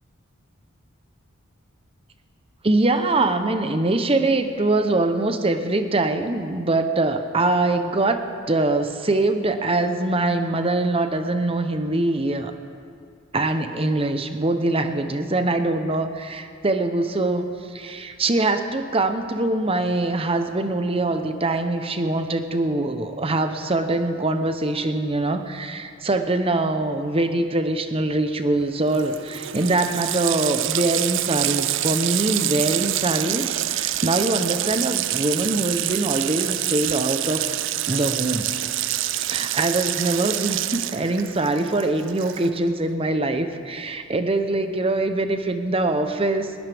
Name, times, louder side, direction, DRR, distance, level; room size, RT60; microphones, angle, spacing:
voice 1, 2.6-12.5 13.3-37.5 37.9-38.4 39.2-46.6, right 2 dB, 25° right, 8 dB, 0.8 m, -23 dB
Water tap faucet, 28.6-28.7 28.9-42.7, right 14 dB, 60° right, 0.4 m, -26 dB
19.5 x 19.5 x 3.5 m, 2.3 s
head